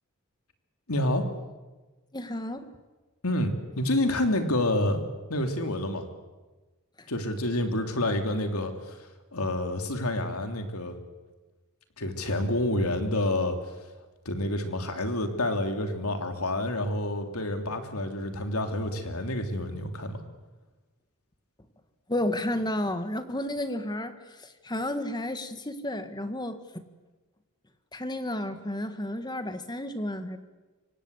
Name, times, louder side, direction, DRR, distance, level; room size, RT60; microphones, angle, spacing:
voice 1, 0.9-1.3 3.2-5.0 5.3-6.1 7.1-9.0 9.3-11.0 12.0-13.6 14.2-20.2, left 1 dB, 80° left, 6 dB, 3.1 m, -28 dB
voice 2, 2.1-2.7 7.0-7.1 22.1-26.8 27.9-30.4, left 1 dB, 20° left, 9 dB, 1.9 m, -32 dB
26.5 x 25.0 x 8.3 m, 1.2 s
head